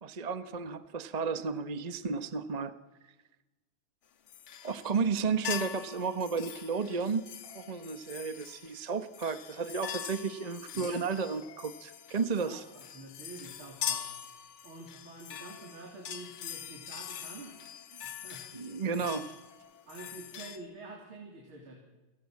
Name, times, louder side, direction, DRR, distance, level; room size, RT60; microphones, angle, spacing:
voice 1, 0.0-2.8 4.6-7.3 7.5-12.6 18.5-19.3, right 5 dB, 30° right, 12 dB, 0.8 m, -33 dB
sound 1, 4.3-5.1 5.5-20.6, left 9 dB, 80° left, 2.2 m, -43 dB
voice 2, 12.4-14.1 14.6-19.0 19.9-21.8, right 2 dB, 85° right, 0 dB, 4.3 m, -48 dB
29.0 x 15.5 x 7.7 m, 1.1 s
omnidirectional pair, 2.2 m